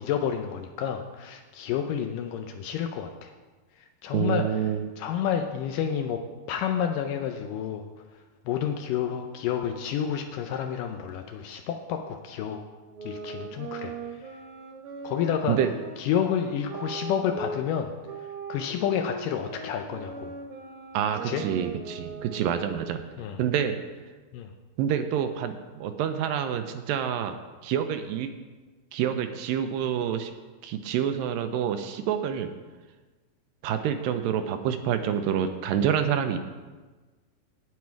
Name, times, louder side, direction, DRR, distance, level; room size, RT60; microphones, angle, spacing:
voice 1, 0.0-3.3 4.0-4.5 5.0-7.9 8.5-12.6 13.0-14.3 15.0-15.6 16.0-17.9 18.5-20.4 21.2-21.4 23.2-23.4 24.3-24.5, left 8 dB, 80° left, 5 dB, 2.0 m, -29 dB
voice 2, 4.1-4.9 15.5-15.7 20.9-23.0 23.4-23.8 24.8-27.4 27.6-28.3 28.9-30.3 30.6-32.5 33.6-36.4, right 9 dB, 80° right, 8 dB, 2.2 m, -27 dB
sound 1, 12.9-17.6 18.0-23.0, right 3 dB, 65° right, 2.2 m, -39 dB
9.5 x 9.4 x 4.6 m, 1.3 s
omnidirectional pair, 4.2 m